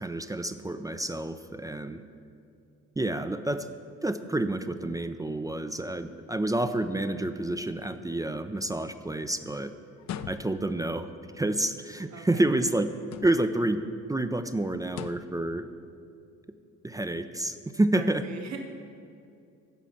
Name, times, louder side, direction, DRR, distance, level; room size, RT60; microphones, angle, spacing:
voice 1, 0.0-2.0 3.0-3.7 4.0-9.7 10.3-11.1 11.3-12.9 13.2-13.8 14.1-15.7 16.8-18.2, right 1 dB, 10° right, 9 dB, 0.4 m, -29 dB
sound 1, 10.0-10.8 13.0-13.7 14.9-15.4, left 9 dB, 45° left, 0.5 m, -40 dB
voice 2, 12.1-12.5 17.9-18.6, right 5 dB, 45° right, 3 dB, 1.2 m, -41 dB
13.5 x 5.0 x 5.8 m, 2.5 s
hypercardioid pair, 55°, 39 cm